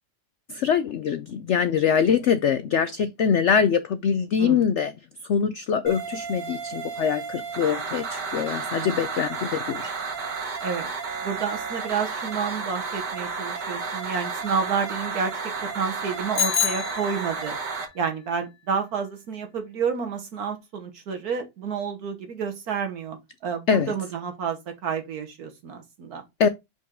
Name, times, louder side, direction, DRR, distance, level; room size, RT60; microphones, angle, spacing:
voice 1, 0.5-4.9 5.3-9.9 23.7-23.9 26.4-26.5, left 7 dB, 75° left, 0.6 m, -23 dB
sound 1, 5.9-17.9, right 5 dB, 85° right, 2.1 m, -32 dB
voice 2, 11.2-15.3 15.7-17.6 17.9-26.2, right 6 dB, 65° right, 1.5 m, -30 dB
Bicycle bell, 16.4-17.6, left 9 dB, 50° left, 0.9 m, -27 dB
5.5 x 5.4 x 3.6 m
omnidirectional pair, 1.8 m